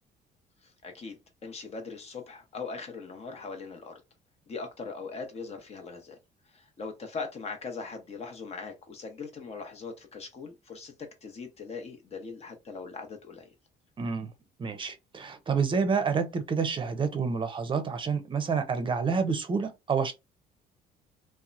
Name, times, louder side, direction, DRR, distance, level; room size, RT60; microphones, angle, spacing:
voice 1, 0.6-3.9 4.5-6.2 6.5-10.9 11.2-13.5, left 4 dB, 40° left, 0.8 m, -40 dB
voice 2, 14.0-14.3 14.6-20.1, right 5 dB, 30° right, 0.6 m, -28 dB
2.8 x 2.1 x 2.5 m
cardioid pair, 110°, 17 cm